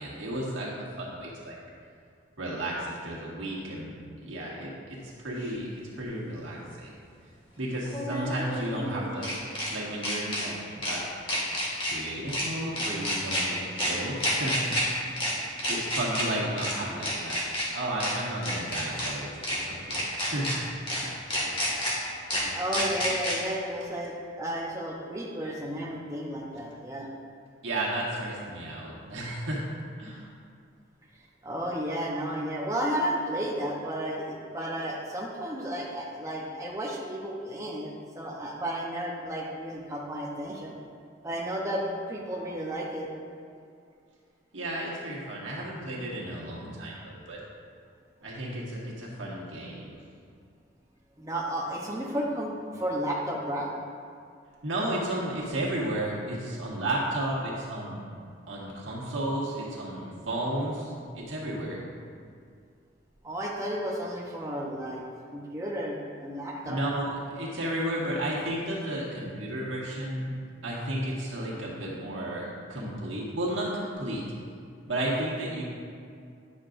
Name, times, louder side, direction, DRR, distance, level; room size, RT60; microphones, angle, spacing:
voice 1, 0.0-1.6 2.4-5.7 5.9-7.0 7.6-15.0 15.7-17.4 17.7-19.3 19.6-20.5 20.9-21.2 27.6-29.6 30.0-30.3 44.5-47.4 48.2-50.0 54.6-58.1 58.5-61.8 66.6-70.3 70.6-74.2 74.9-75.6, right 1 dB, 85° right, -5 dB, 1.7 m, -33 dB
sound 1, 5.4-5.5 7.9-9.7 10.0-10.4 10.8-11.0 11.3-11.9 12.3-12.4 12.8-13.4 13.8-13.9 14.2-14.8 15.2-15.3 15.6-16.2 16.6-16.7 17.0-17.6 18.0-18.1 18.4-19.1 19.4-19.6 19.9-20.5 20.9-21.0 21.3-21.9 22.3-22.4 22.7-23.3, equal, 30° left, 1.8 m, -29 dB
voice 2, 22.5-27.1 31.4-40.8 41.2-43.4 51.2-53.7 63.2-65.1 65.3-66.8, equal, 15° right, -3 dB, 0.7 m, -33 dB
10.0 x 6.5 x 2.5 m, 2.3 s
head